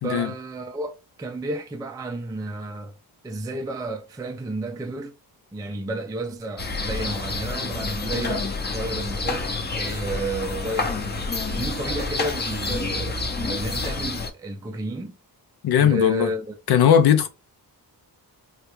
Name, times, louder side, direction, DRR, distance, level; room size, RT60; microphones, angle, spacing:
voice 1, 0.0-3.0 3.2-5.1 5.5-11.2 11.5-15.2 15.8-16.6, right 1 dB, 10° right, 0.3 m, -31 dB
sound 1, 6.6-14.3, left 3 dB, 25° left, 0.6 m, -28 dB
voice 2, 15.6-16.3 16.7-17.3, left 8 dB, 75° left, 0.5 m, -18 dB
3.2 x 2.3 x 3.0 m
wide cardioid pair, 105°, 40 cm